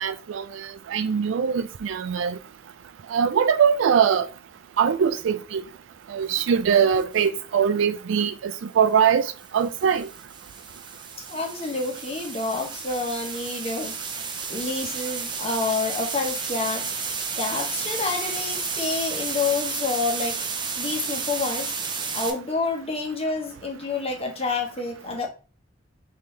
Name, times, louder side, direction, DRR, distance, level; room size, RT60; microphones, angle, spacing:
voice 1, 0.0-2.4 3.1-4.3 4.8-5.6 6.1-10.1, right 7 dB, 75° right, 0.4 m, -22 dB
sound 1, 7.0-7.3 9.4-22.3, right 5 dB, 25° right, 0.5 m, -32 dB
voice 2, 11.3-14.0 14.2-16.9 17.4-20.4 20.8-21.7 22.1-25.3, left 3 dB, 30° left, 0.9 m, -28 dB
5.5 x 2.7 x 3.2 m
head